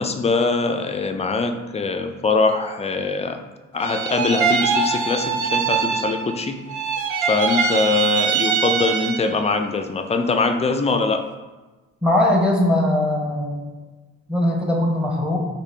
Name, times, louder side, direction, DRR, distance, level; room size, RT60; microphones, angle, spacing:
voice 1, 0.0-3.4 3.7-6.6 7.2-11.2, left 4 dB, 20° left, 6 dB, 0.3 m, -22 dB
sound 1, 3.8-6.4 6.7-9.4, right 5 dB, 75° right, 0.5 m, -22 dB
voice 2, 12.0-13.6 14.3-15.4, left 1 dB, 5° right, 0 dB, 0.8 m, -20 dB
4.8 x 2.2 x 3.3 m, 1.2 s
cardioid pair, 90°, 30 cm